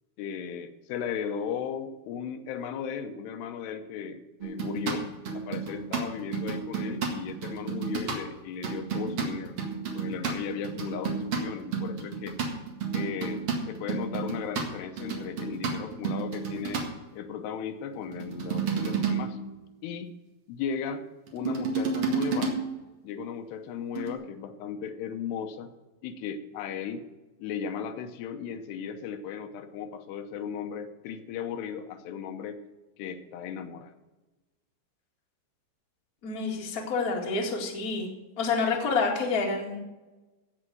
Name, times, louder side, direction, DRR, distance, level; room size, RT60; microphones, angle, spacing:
voice 1, 0.2-5.1 5.3-9.6 9.9-12.4 12.9-16.9 17.1-19.4 19.8-20.1 20.5-21.1 21.3-22.6 23.0-25.7 26.0-27.0 27.4-32.6 33.0-33.9, left 7 dB, 85° left, 8 dB, 2.9 m, -36 dB
Congas various beats - pop and latin - eq, 4.4-8.2 8.6-16.9 17.9-19.5 21.3-22.9 24.0-24.1, right 5 dB, 50° right, 2.1 m, -31 dB
voice 2, 36.2-38.1 38.4-39.8, left 4 dB, 30° left, -1 dB, 1.8 m, -28 dB
16.0 x 5.6 x 7.7 m, 1.1 s
omnidirectional pair, 4.7 m